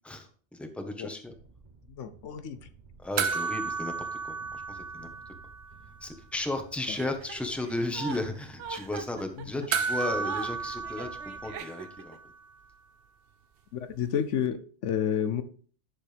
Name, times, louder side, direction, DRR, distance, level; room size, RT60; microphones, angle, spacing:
voice 1, 0.0-1.3 3.0-5.1 6.0-12.2, left 2 dB, ahead, 5 dB, 1.1 m, -35 dB
sound 1, 1.3-11.6, right 4 dB, 40° right, 1.2 m, -55 dB
voice 2, 1.9-2.6 9.4-9.5 13.7-15.4, left 9 dB, 80° left, 11 dB, 1.1 m, -30 dB
sound 2, 3.2-5.8 6.1-6.2 9.7-12.3 14.5-14.6, right 5 dB, 60° right, 0.8 m, -33 dB
Chuckle chortle, 6.9-12.1, right 6 dB, 80° right, 1.1 m, -42 dB
11.0 x 6.9 x 3.4 m, 0.43 s
omnidirectional pair, 1.2 m